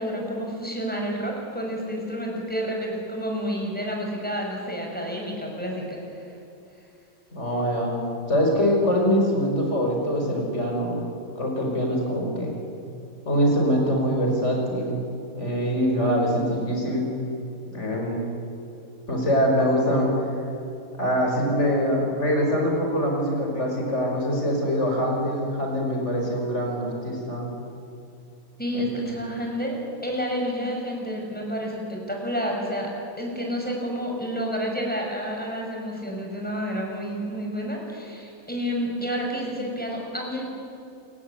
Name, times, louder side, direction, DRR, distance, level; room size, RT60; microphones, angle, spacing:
voice 1, 0.0-6.3 28.6-40.5, equal, 5° left, 0 dB, 5.9 m, -30 dB
voice 2, 7.3-8.0 8.3-11.1 11.4-12.5 13.3-15.1 15.3-17.1 17.7-18.3 19.1-20.1 21.0-27.5 28.7-28.8, equal, 50° left, 0 dB, 5.8 m, -24 dB
28.0 x 16.0 x 9.9 m, 2.6 s
omnidirectional pair, 1.5 m